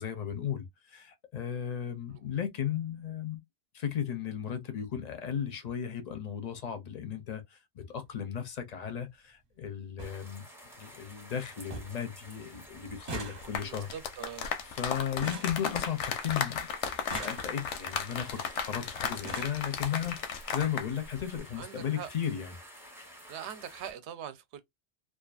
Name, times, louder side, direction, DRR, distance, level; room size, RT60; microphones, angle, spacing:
voice 1, 0.0-3.4 3.7-10.5 10.8-13.9 14.7-16.7 17.2-20.2 20.5-22.6, left 9 dB, 50° left, 0.5 m, -35 dB
sound 1, 7.8-8.0 9.3-9.4 9.6-9.7 10.0-10.2 10.6-11.1 11.4-11.5 11.7-12.1 12.3-16.3 16.9-17.9 18.7-18.8 19.1-19.7 20.6-20.7 21.0-21.2 21.5-21.6, right 3 dB, 40° right, 0.9 m, -44 dB
sound 2, 10.0-23.9, equal, 5° right, 0.6 m, -51 dB
sound 3, 13.4-20.9 21.2-21.4, left 7 dB, 85° left, 0.9 m, -35 dB
voice 2, 13.7-14.5 21.6-22.1 23.3-24.6, right 9 dB, 70° right, 0.8 m, -42 dB
2.5 x 2.3 x 2.3 m
omnidirectional pair, 1.2 m